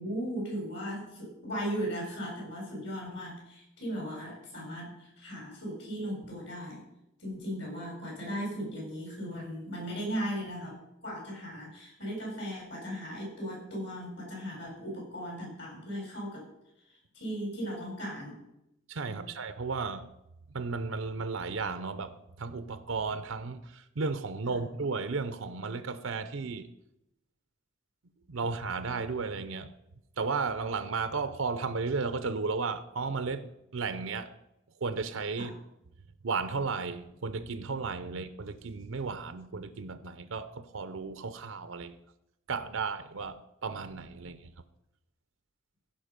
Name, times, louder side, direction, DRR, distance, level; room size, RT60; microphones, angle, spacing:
voice 1, 0.0-6.8 7.2-10.8 11.0-16.4 17.1-18.4 19.1-19.3 35.4-35.5 38.1-38.2, equal, 55° left, 4.8 m, -37 dB
voice 2, 18.9-20.1 20.5-26.7 28.3-29.7 30.2-34.3 34.8-35.5 36.2-42.0 42.5-44.5, right 4 dB, 80° right, 0.6 m, -34 dB
15.5 x 5.6 x 5.2 m
head